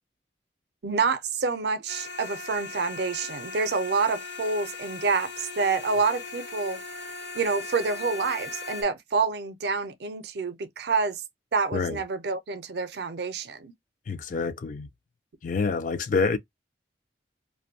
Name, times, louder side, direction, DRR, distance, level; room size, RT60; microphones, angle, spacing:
voice 1, 0.8-6.8 7.3-11.2 11.5-13.7, right 4 dB, 60° right, 0.5 m, -27 dB
sound 1, 1.9-8.8, left 4 dB, 70° left, 0.9 m, -39 dB
voice 2, 14.1-14.9 15.4-16.4, left 4 dB, 45° left, 0.4 m, -27 dB
2.5 x 2.1 x 2.6 m
head